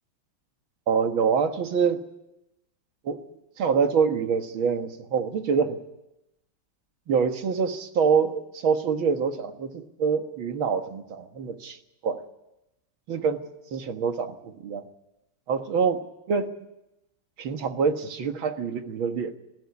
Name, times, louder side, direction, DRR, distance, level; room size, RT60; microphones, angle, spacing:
voice 1, 0.9-2.0 3.0-3.2 3.6-5.8 7.1-11.8 12.0-12.3 13.1-13.5 13.7-14.9 15.5-16.0 16.3-16.5 17.4-19.4, right 6 dB, 85° right, 7 dB, 2.3 m, -25 dB
20.5 x 16.0 x 9.7 m, 0.90 s
omnidirectional pair, 2.2 m